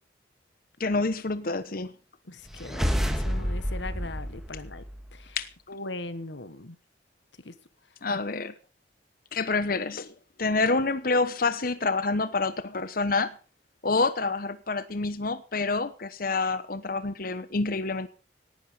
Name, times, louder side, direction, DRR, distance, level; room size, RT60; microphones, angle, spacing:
voice 1, 0.8-1.9 5.4-5.5 8.0-8.5 9.3-10.1 10.4-13.3 13.8-18.1, left 3 dB, 55° left, 12 dB, 1.0 m, -27 dB
voice 2, 2.3-4.8 5.1-5.4 5.7-6.8 7.4-7.5 8.1-8.2, left 2 dB, 90° left, 13 dB, 1.6 m, -39 dB
sound 1, 2.5-5.2, equal, ahead, 2.1 m, -29 dB
18.5 x 11.0 x 5.5 m, 0.37 s
head